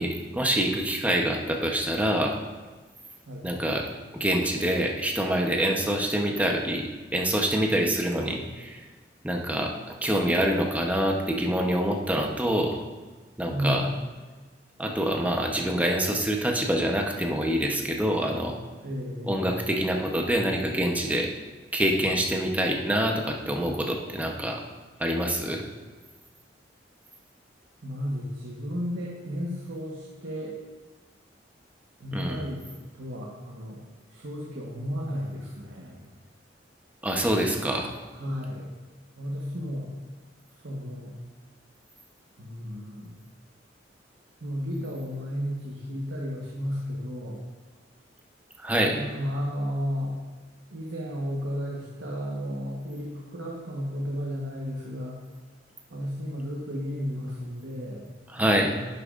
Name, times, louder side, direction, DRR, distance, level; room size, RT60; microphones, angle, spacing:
voice 1, 0.0-2.4 3.4-3.9 4.1-8.9 9.2-12.8 13.4-13.9 14.8-18.6 19.3-21.3 21.7-24.6 25.0-25.6 32.1-32.4 37.0-37.9 48.6-49.0 58.3-58.7, right 1 dB, 10° right, 1 dB, 0.9 m, -26 dB
voice 2, 13.5-13.9 18.8-19.6 27.8-30.6 32.0-32.6 32.9-33.8 34.1-36.1 37.5-37.7 38.2-38.7 39.2-39.9 40.5-41.1 42.4-43.2 44.4-47.4 48.9-50.2 50.7-55.2 55.9-58.8, equal, 85° right, -3 dB, 1.2 m, -33 dB
10.5 x 8.2 x 2.5 m, 1.3 s
head